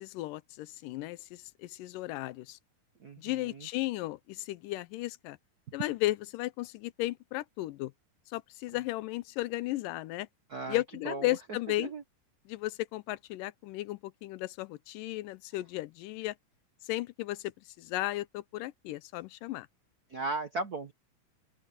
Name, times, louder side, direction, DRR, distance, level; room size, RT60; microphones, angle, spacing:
voice 1, 0.0-2.6 3.2-5.4 5.7-7.9 8.3-10.3 10.7-11.9 12.5-16.3 16.8-17.5 17.8-19.7, left 17 dB, 90° left, 2.3 m, -35 dB
voice 2, 3.0-3.7 10.5-11.4 11.8-12.0 20.1-20.9, right 3 dB, 80° right, 0.8 m, -37 dB
open air
omnidirectional pair, 3.7 m